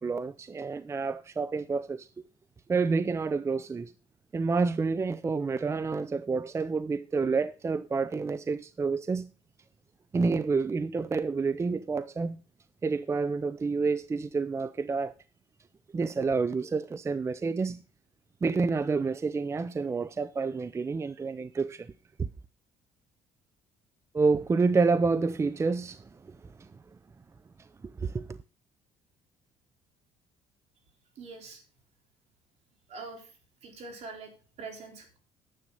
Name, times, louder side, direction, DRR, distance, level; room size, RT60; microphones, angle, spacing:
voice 1, 0.0-2.1 2.7-3.9 4.3-9.3 10.1-12.4 12.8-15.1 15.9-17.8 18.4-21.9 22.2-22.3 24.1-26.0 26.6-26.7 28.0-28.3, right 4 dB, 20° right, 0.5 m, -28 dB
voice 2, 31.2-31.6 32.9-33.3 33.6-34.3 34.6-35.2, right 4 dB, 60° right, 4.0 m, -43 dB
9.8 x 7.8 x 5.4 m
cardioid pair, 95°, 12 cm